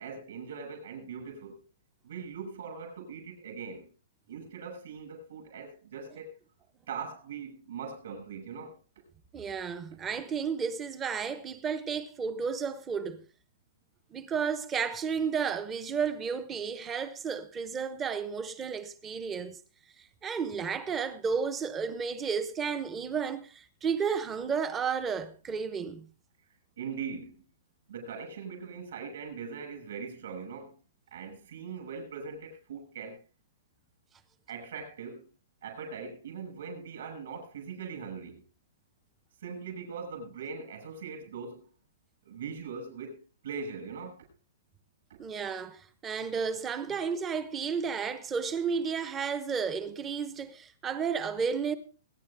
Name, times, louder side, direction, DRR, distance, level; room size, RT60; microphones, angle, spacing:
voice 1, 0.0-1.6 2.0-3.9 4.3-6.3 6.9-8.8 26.8-27.4 27.9-30.7 31.1-33.2 34.5-35.3 35.6-38.4 39.4-41.7 42.2-44.2, right 5 dB, 60° right, 6.6 m, -41 dB
voice 2, 9.3-13.2 14.1-19.6 20.0-26.1 45.2-51.7, right 6 dB, 10° right, 0.9 m, -32 dB
21.5 x 10.0 x 3.5 m
hypercardioid pair, 175°, 0 cm